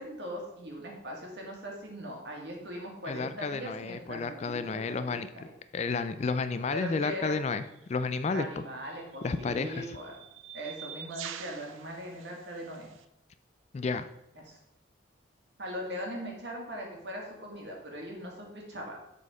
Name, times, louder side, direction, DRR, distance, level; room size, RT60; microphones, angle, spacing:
voice 1, 0.0-5.4 6.7-7.4 8.3-10.1 10.5-12.9 14.4-14.6 15.6-19.0, equal, 60° right, 0 dB, 1.9 m, -40 dB
voice 2, 3.1-5.5 5.7-7.6 7.9-8.6 9.2-10.0 13.7-14.1, left 4 dB, 35° left, 12 dB, 0.3 m, -31 dB
sound 1, 7.6-7.8 8.8-13.0, right 9 dB, 85° right, 0.5 m, -46 dB
7.3 x 4.1 x 5.0 m, 0.82 s
head